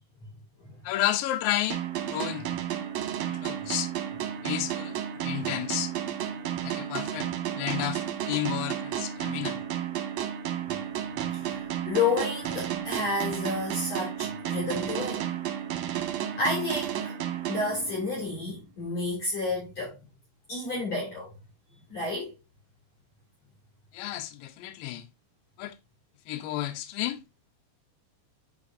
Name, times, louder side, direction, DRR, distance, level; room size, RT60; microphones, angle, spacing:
voice 1, 0.8-2.5 3.3-3.9 4.4-5.9 6.6-9.6 23.9-25.1 25.6-25.8 26.3-27.2, left 13 dB, 85° left, 2.0 m, -32 dB
sound 1, 1.7-18.3, right 10 dB, 70° right, 2.5 m, -32 dB
voice 2, 11.2-15.2 16.3-17.1 17.5-20.0 20.5-21.3 21.9-22.3, left 3 dB, 40° left, 3.5 m, -30 dB
9.9 x 5.2 x 2.6 m
omnidirectional pair, 5.2 m